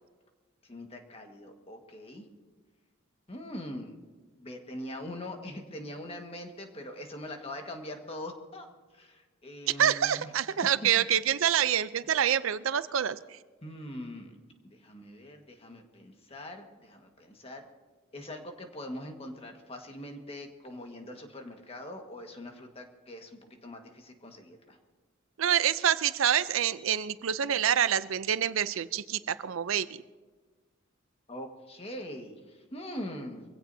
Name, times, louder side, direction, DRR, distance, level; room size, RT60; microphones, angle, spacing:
voice 1, 0.6-2.3 3.3-3.9 4.4-8.7 8.9-10.3 12.0-12.3 13.6-14.3 14.7-17.7 18.1-24.8 31.3-33.4, left 1 dB, 30° left, 4 dB, 1.6 m, -42 dB
voice 2, 9.8-13.4 25.4-29.9, right 9 dB, 75° right, 15 dB, 0.5 m, -27 dB
23.5 x 16.5 x 2.7 m, 1.3 s
head